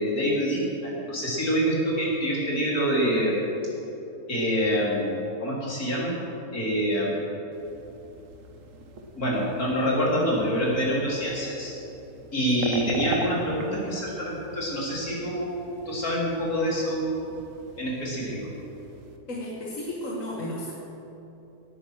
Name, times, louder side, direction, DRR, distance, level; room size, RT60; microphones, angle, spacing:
voice 1, 0.0-3.4 4.3-6.2 6.5-7.2 9.2-11.8 12.3-17.3 17.8-18.5, equal, 75° left, -4 dB, 3.9 m, -26 dB
sound 1, 7.5-19.2, right 3 dB, 60° right, 1.5 m, -40 dB
voice 2, 12.4-12.7 19.3-20.7, left 1 dB, 55° left, -4 dB, 2.0 m, -34 dB
18.0 x 9.2 x 6.3 m, 3.0 s
omnidirectional pair, 1.6 m